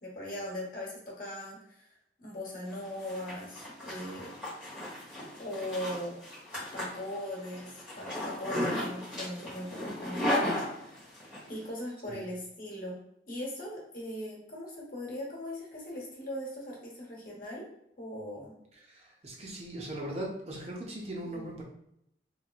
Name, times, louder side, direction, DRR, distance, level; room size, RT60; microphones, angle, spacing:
voice 1, 0.0-1.9 2.2-4.3 5.4-6.1 6.7-10.3 10.7-11.0 11.5-13.0 13.3-17.7 18.0-18.5 21.3-21.4, left 1 dB, 50° left, -3 dB, 1.1 m, -39 dB
Zipper (clothing), 2.7-11.4, left 1 dB, 5° right, 1.2 m, -35 dB
voice 2, 18.7-21.6, right 1 dB, 35° right, -1 dB, 0.6 m, -39 dB
3.5 x 3.0 x 2.4 m, 0.76 s
head